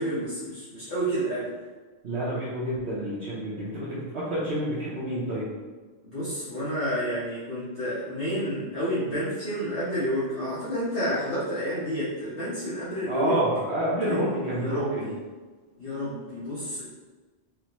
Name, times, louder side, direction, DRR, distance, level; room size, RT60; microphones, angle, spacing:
voice 1, 0.0-1.5 6.0-13.4 14.0-15.1 15.8-16.9, equal, 50° left, -13 dB, 1.4 m, -30 dB
voice 2, 2.0-5.5 13.1-15.1, right 1 dB, 65° right, -9 dB, 1.2 m, -28 dB
4.9 x 2.8 x 3.0 m, 1.3 s
omnidirectional pair, 1.2 m